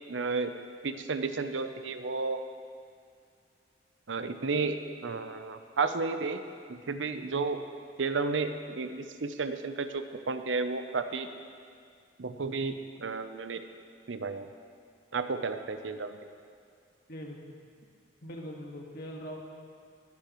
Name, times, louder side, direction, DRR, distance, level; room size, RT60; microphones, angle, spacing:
voice 1, 0.1-0.5 0.8-2.4 4.1-6.4 6.7-7.6 8.0-11.3 12.2-13.6 14.1-14.5 15.1-16.2, right 4 dB, 85° right, 9 dB, 0.7 m, -32 dB
voice 2, 17.1-17.6 18.2-19.4, equal, 55° left, 0 dB, 1.8 m, -41 dB
19.5 x 12.0 x 3.1 m, 2.3 s
head